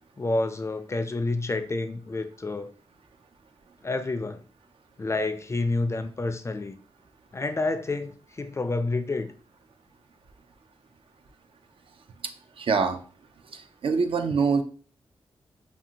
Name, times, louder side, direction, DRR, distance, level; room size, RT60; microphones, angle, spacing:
voice 1, 0.2-2.7 3.8-4.4 5.0-6.7 7.3-9.3, left 2 dB, 30° left, 0.3 m, -29 dB
voice 2, 12.6-13.0 13.5-14.6, right 5 dB, 65° right, 0.4 m, -24 dB
2.7 x 2.4 x 2.7 m
cardioid pair, 60°, 10 cm